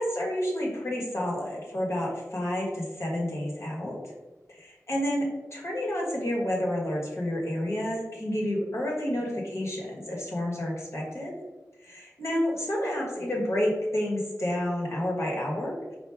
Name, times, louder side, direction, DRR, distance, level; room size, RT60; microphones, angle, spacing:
voice 1, 0.0-4.0 4.5-11.3 11.8-15.8, left 1 dB, 55° left, -3 dB, 1.4 m, -30 dB
4.5 x 2.6 x 3.4 m, 1.2 s
cardioid pair, 45°, 6 cm